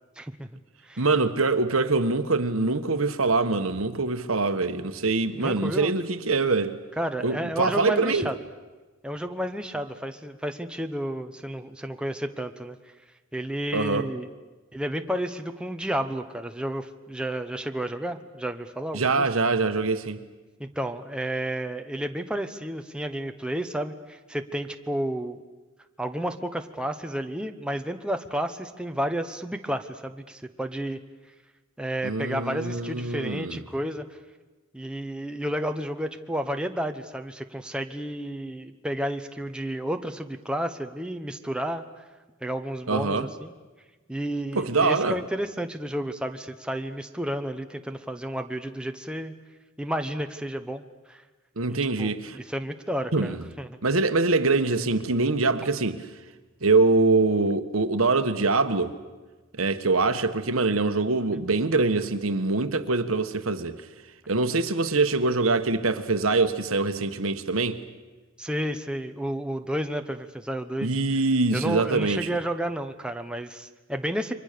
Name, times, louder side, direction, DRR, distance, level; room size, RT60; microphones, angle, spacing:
voice 1, 0.2-0.5 0.8-1.0 5.4-5.9 7.0-8.4 9.0-12.8 13.3-14.3 14.7-19.3 20.6-25.4 26.0-31.0 31.8-34.0 34.7-42.0 42.4-43.5 44.1-49.3 49.8-51.2 51.7-53.8 68.4-70.9 71.5-74.3, right 1 dB, 5° right, 1.0 m, -31 dB
voice 2, 1.0-6.8 7.2-8.3 13.7-14.1 18.9-20.2 32.0-33.6 42.9-43.3 44.5-45.2 51.6-52.4 53.1-53.4 53.8-56.0 56.6-58.9 59.6-63.7 64.3-67.8 70.8-72.2, right 3 dB, 70° right, 1.4 m, -24 dB
29.5 x 24.0 x 6.8 m
head